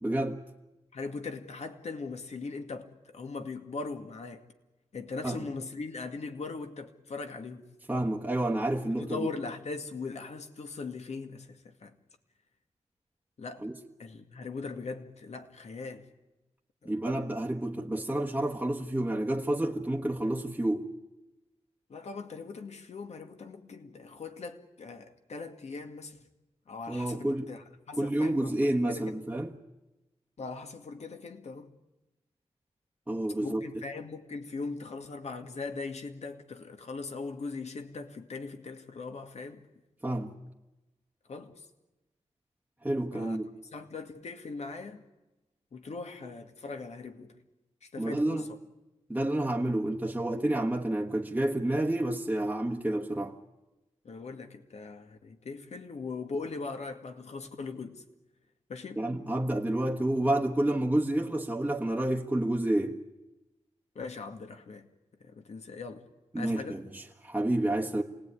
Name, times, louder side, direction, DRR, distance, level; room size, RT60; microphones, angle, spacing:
voice 1, 0.0-0.4 5.2-5.4 7.9-9.3 13.6-13.7 16.8-20.9 26.9-27.5 28.0-29.5 33.1-33.7 40.0-40.3 42.8-43.5 48.0-48.4 49.1-53.3 59.0-63.0 66.3-68.0, right 1 dB, 10° right, 1.4 m, -29 dB
voice 2, 0.9-4.5 4.9-7.7 8.9-12.0 13.4-13.7 14.0-16.0 16.8-16.9 21.9-26.2 26.7-28.6 28.9-29.2 30.4-31.7 33.4-39.6 41.3-41.7 43.1-43.4 43.7-45.0 45.7-47.3 47.8-48.6 54.0-58.0 58.7-59.0 63.9-64.9 65.2-66.1 66.4-66.8, left 4 dB, 70° left, 2.2 m, -40 dB
27.0 x 19.0 x 9.8 m
wide cardioid pair, 95°, 12 cm